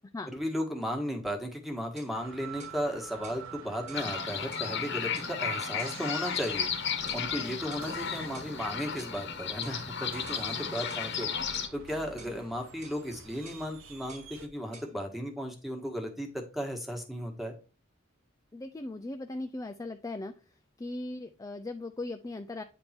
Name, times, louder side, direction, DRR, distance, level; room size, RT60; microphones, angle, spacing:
voice 1, 0.3-6.7 7.1-11.3 11.7-17.5, equal, ahead, 2 dB, 1.4 m, -35 dB
sound 1, 2.0-2.2 2.6-2.8 3.2-3.4 3.9-4.1 4.5-4.7 5.1-5.4 5.8-6.0 6.4-6.6 7.1-7.3 7.7-7.9 8.3-8.5 9.0-9.2 9.6-9.8 10.3-10.5 10.9-11.1 11.5-11.7 12.2-12.4 12.8-13.0 13.4-13.7 14.1-14.3 14.7-14.9, right 3 dB, 35° right, 1.3 m, -51 dB
sound 2, 2.1-14.5, right 5 dB, 85° right, 1.0 m, -47 dB
sound 3, 3.9-11.7, left 7 dB, 60° left, 1.1 m, -34 dB
voice 2, 7.4-8.0 10.5-10.7 12.2-12.4 18.5-20.3 20.8-22.6, left 2 dB, 15° left, 6 dB, 0.4 m, -39 dB
9.2 x 3.5 x 4.3 m, 0.33 s
head